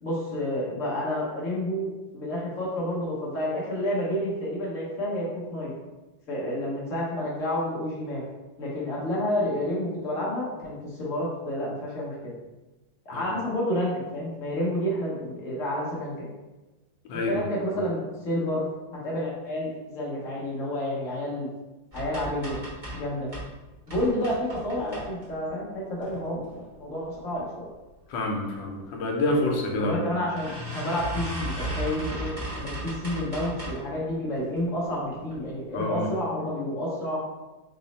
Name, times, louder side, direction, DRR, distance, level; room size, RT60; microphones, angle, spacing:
voice 1, 0.0-5.7 6.3-8.2 8.6-12.3 13.1-16.3 17.1-18.7 19.0-21.5 21.9-23.3 23.9-27.6 29.8-37.2, left 1 dB, 55° left, -5 dB, 0.9 m, -30 dB
voice 2, 17.1-17.4 28.1-30.0 35.7-36.1, left 2 dB, 80° left, 0 dB, 1.4 m, -27 dB
sound 1, 21.9-23.5 23.9-25.5 26.0-26.6 27.0-27.4 27.7-27.8 28.1-28.2 29.2-29.3 29.7-29.8 30.4-33.9 34.4-34.8 35.3-35.4 35.7-35.8, right 1 dB, 30° right, 0.7 m, -36 dB
3.9 x 2.0 x 3.9 m, 1.1 s
omnidirectional pair, 2.1 m